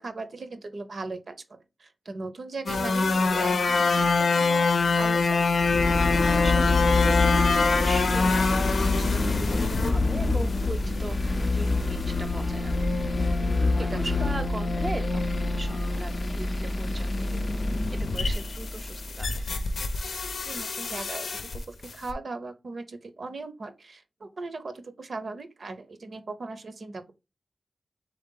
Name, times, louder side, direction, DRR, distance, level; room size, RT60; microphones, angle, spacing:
voice 1, 0.0-5.4 13.8-14.0 20.4-27.1, right 3 dB, 65° right, 0.7 m, -38 dB
sound 1, 2.7-21.6 21.8-22.1, left 4 dB, 90° left, 0.6 m, -27 dB
sound 2, 5.6-19.5, left 2 dB, 40° left, 0.4 m, -27 dB
voice 2, 6.4-12.9 13.4-17.4 17.9-19.5, right 2 dB, 30° right, 0.4 m, -39 dB
3.9 x 3.4 x 3.8 m
wide cardioid pair, 100°, 0 cm